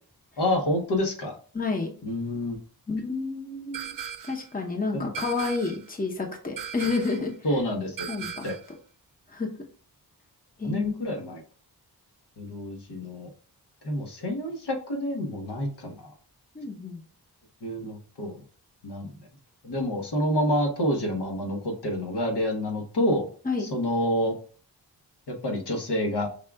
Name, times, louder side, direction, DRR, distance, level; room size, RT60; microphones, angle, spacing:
voice 1, 0.4-1.3 2.0-2.6 4.9-5.1 7.4-8.1 8.4-8.5 10.6-11.4 12.4-13.3 13.8-16.1 17.6-18.4 18.8-19.2 19.6-23.3 23.6-24.3 25.3-26.3, left 1 dB, 85° left, 1 dB, 1.2 m, -28 dB
voice 2, 1.5-1.9 2.9-4.0 4.3-7.3 8.1-8.4 9.3-9.5 10.6-11.1 16.5-17.0 23.4-23.7, left 4 dB, 20° left, 1 dB, 0.8 m, -30 dB
sound 1, 3.7-4.5 5.1-5.9 6.6-7.3 8.0-8.7, right 7 dB, 55° right, 0.5 m, -37 dB
5.5 x 2.4 x 3.5 m, 0.41 s
wide cardioid pair, 105°, 39 cm